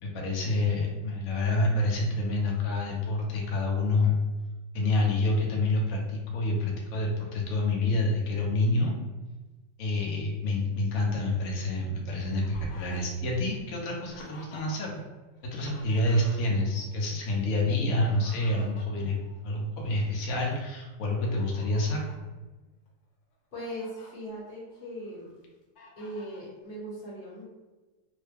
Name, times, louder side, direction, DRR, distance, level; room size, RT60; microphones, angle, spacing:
voice 1, 0.0-4.2 4.7-8.9 9.8-15.0 15.4-19.1 19.4-22.1, left 2 dB, 60° left, -1 dB, 0.9 m, -28 dB
Fowl, 11.7-15.0 15.3-16.9 17.8-19.9 20.3-20.5 21.2-22.2 22.9-23.0 23.3-24.1 24.6-25.3 25.8-26.5, left 1 dB, 80° left, 1.4 m, -50 dB
voice 2, 23.5-25.3 26.0-27.5, equal, 30° left, -7 dB, 1.2 m, -39 dB
3.2 x 2.1 x 3.3 m, 1.2 s
omnidirectional pair, 2.0 m